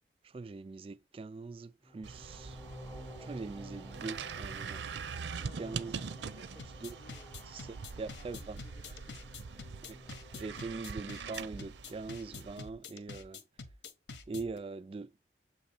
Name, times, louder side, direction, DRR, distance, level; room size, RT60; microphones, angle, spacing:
voice 1, 0.2-2.6 3.2-4.8 5.6-6.0 6.8-7.0 7.5-8.6 9.9-10.0 10.3-13.4 14.3-15.1, right 3 dB, 30° right, 0.3 m, -42 dB
sound 1, 1.8-12.0, equal, 10° left, 0.7 m, -52 dB
sound 2, 2.0-12.6, right 5 dB, 85° right, 0.5 m, -43 dB
voice 2, 5.4-9.3, left 2 dB, 45° left, 0.6 m, -60 dB
sound 3, 6.6-14.6, left 4 dB, 90° left, 1.1 m, -47 dB
7.6 x 3.0 x 4.3 m
head